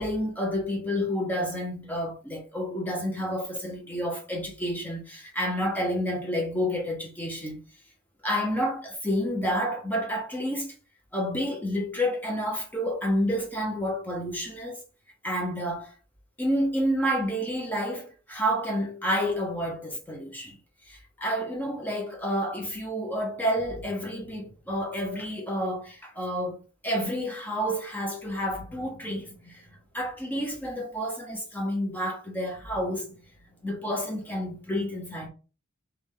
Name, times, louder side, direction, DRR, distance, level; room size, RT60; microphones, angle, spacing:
voice 1, 0.0-7.6 8.2-10.7 11.1-14.8 15.2-15.9 16.4-20.6 20.9-29.6 29.9-33.1 33.6-35.3, equal, 10° left, 0.7 m, -29 dB
3.4 x 3.1 x 3.6 m
head